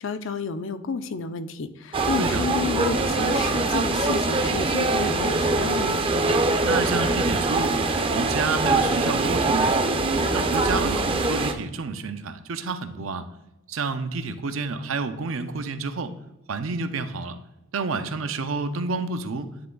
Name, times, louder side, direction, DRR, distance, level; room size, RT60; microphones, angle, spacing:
voice 1, 0.0-6.0, left 4 dB, 65° left, 11 dB, 0.5 m, -31 dB
sound 1, 1.9-11.5, right 2 dB, 25° right, 0.5 m, -23 dB
voice 2, 6.7-9.9 10.3-13.3 13.7-16.1 16.5-17.4 17.7-19.5, right 4 dB, 75° right, 9 dB, 0.6 m, -29 dB
9.6 x 3.4 x 3.8 m, 0.95 s
head